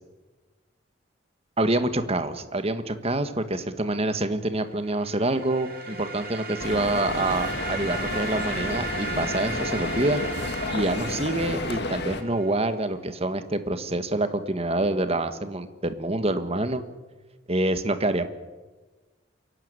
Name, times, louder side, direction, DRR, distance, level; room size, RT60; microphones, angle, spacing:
voice 1, 1.6-10.2 10.7-16.8 17.5-18.3, right 2 dB, 30° right, 10 dB, 1.5 m, -26 dB
sound 1, 4.8-12.6, right 2 dB, 50° right, 4.7 m, -35 dB
sound 2, 6.6-12.2, left 2 dB, 60° left, 1.9 m, -31 dB
29.0 x 11.5 x 9.6 m, 1.2 s
head